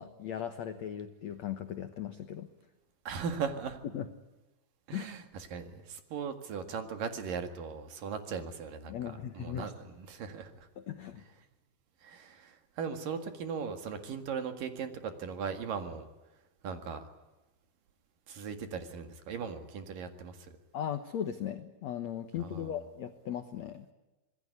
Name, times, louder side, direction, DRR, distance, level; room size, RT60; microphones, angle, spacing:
voice 1, 0.0-2.5 3.9-4.1 4.9-5.1 8.9-9.7 10.8-11.2 20.7-23.9, left 9 dB, 80° left, 9 dB, 1.5 m, -38 dB
voice 2, 3.0-3.8 4.9-9.0 9.3-10.7 12.0-16.0 16.6-17.1 18.3-20.5 22.4-22.8, right 6 dB, 60° right, 7 dB, 3.3 m, -38 dB
26.5 x 20.5 x 9.7 m, 1.1 s
omnidirectional pair, 5.0 m